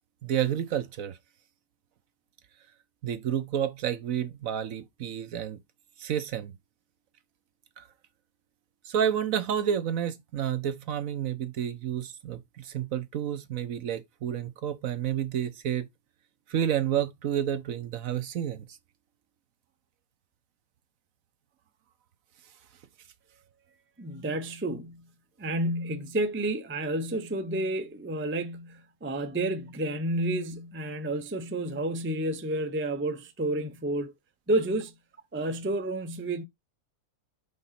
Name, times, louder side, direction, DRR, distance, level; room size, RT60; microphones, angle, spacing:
voice 1, 0.2-1.2 3.0-5.6 6.0-6.5 7.8-7.9 8.9-15.9 16.5-18.7, right 9 dB, 65° right, 1.1 m, -30 dB
voice 2, 24.0-25.1 25.4-34.1 34.5-34.9 35.3-36.4, right 1 dB, 15° right, 0.4 m, -30 dB
5.3 x 3.8 x 5.7 m
omnidirectional pair, 1.6 m